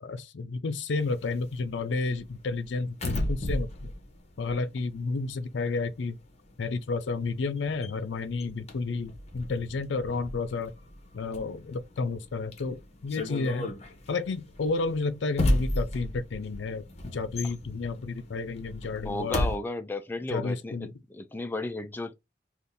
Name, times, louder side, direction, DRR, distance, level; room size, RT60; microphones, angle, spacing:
voice 1, 0.0-3.9 4.4-6.2 6.6-10.7 11.1-13.7 14.1-19.5 20.3-20.9, left 3 dB, 80° left, 0.5 m, -31 dB
sound 1, 1.0-5.4 5.7-19.6, left 1 dB, 35° left, 0.8 m, -34 dB
voice 2, 19.0-20.8 21.1-22.1, left 2 dB, 10° left, 0.3 m, -33 dB
2.7 x 2.5 x 3.7 m
head